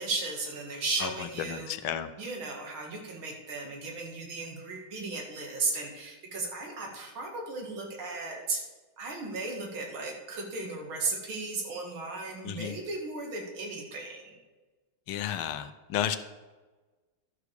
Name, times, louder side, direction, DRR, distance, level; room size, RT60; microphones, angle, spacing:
voice 1, 0.0-1.9 2.2-8.6 9.0-14.4, right 3 dB, 80° right, 1 dB, 2.6 m, -35 dB
voice 2, 1.5-2.1 12.4-12.7 15.1-16.2, left 10 dB, 85° left, 11 dB, 1.5 m, -32 dB
11.5 x 5.0 x 6.4 m, 1.2 s
omnidirectional pair, 2.3 m